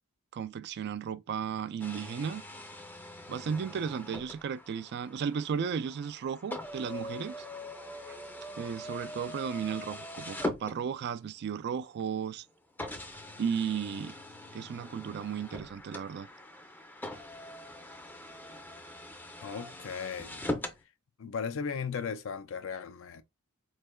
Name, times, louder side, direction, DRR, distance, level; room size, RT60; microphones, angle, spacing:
voice 1, 0.3-2.4 3.3-7.5 8.1-8.2 8.6-12.4 13.4-14.2 14.5-16.3, right 7 dB, 50° right, 0.3 m, -34 dB
sound 1, 1.8-11.3 12.0-12.1 12.8-20.8, left 1 dB, 10° left, 0.5 m, -42 dB
voice 2, 19.4-20.5 21.2-23.2, left 6 dB, 65° left, 0.5 m, -36 dB
4.4 x 3.2 x 2.2 m
head